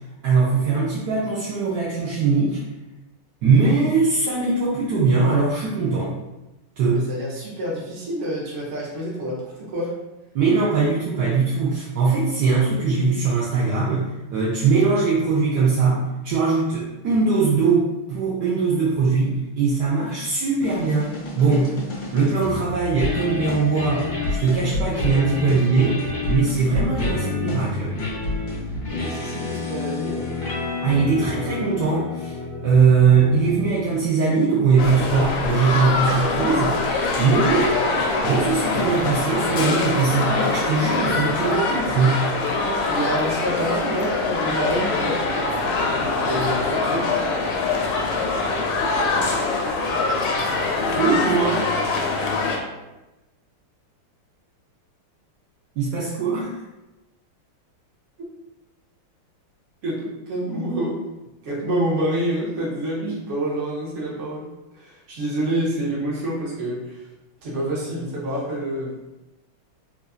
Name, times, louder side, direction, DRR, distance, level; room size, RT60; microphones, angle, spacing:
voice 1, 0.2-2.6 3.4-6.2 6.8-7.1 10.3-21.7 22.1-26.0 26.3-28.0 30.8-32.4 32.6-36.8 37.2-37.8 38.2-42.2 51.0-51.6 55.8-56.5, right 4 dB, 80° right, -6 dB, 0.9 m, -21 dB
voice 2, 6.9-9.9 28.9-30.2 42.6-45.2 45.9-47.3 59.8-61.0 61.4-67.0 67.4-69.2, right 1 dB, 50° right, -6 dB, 0.9 m, -27 dB
sound 1, 20.6-34.1, left 3 dB, 55° left, 1.3 m, -29 dB
sound 2, 34.8-52.6, left 3 dB, 85° left, 1.5 m, -23 dB
4.0 x 2.4 x 2.4 m, 1.0 s
omnidirectional pair, 2.4 m